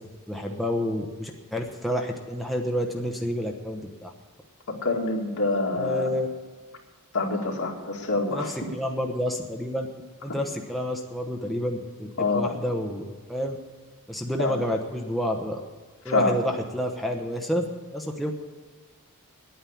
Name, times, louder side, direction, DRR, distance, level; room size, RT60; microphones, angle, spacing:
voice 1, 0.3-4.1 5.7-6.3 8.3-9.9 10.2-13.0 13.3-13.6 14.1-15.6 16.0-17.6 17.9-18.3, equal, ahead, 1 dB, 0.9 m, -29 dB
voice 2, 4.8-6.1 7.1-8.5 12.2-12.5 14.4-14.6 16.1-16.3, left 3 dB, 65° left, 0 dB, 2.3 m, -25 dB
9.9 x 9.3 x 9.8 m, 1.5 s
head